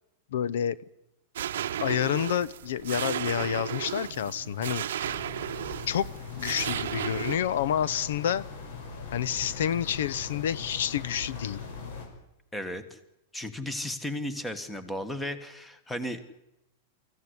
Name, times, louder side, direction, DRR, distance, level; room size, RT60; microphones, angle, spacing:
voice 1, 0.3-0.8 1.8-5.1 5.9-6.1 6.4-8.4 9.1-11.6, left 9 dB, 75° left, 21 dB, 0.7 m, -29 dB
sound 1, 1.4-7.4, right 11 dB, 80° right, 0.8 m, -34 dB
sound 2, 5.0-12.1, left 4 dB, 60° left, 6.2 m, -41 dB
voice 2, 12.5-13.0 13.3-16.2, left 1 dB, 5° left, 11 dB, 1.4 m, -34 dB
24.0 x 15.0 x 9.7 m, 0.89 s
supercardioid pair, 170°, 0 cm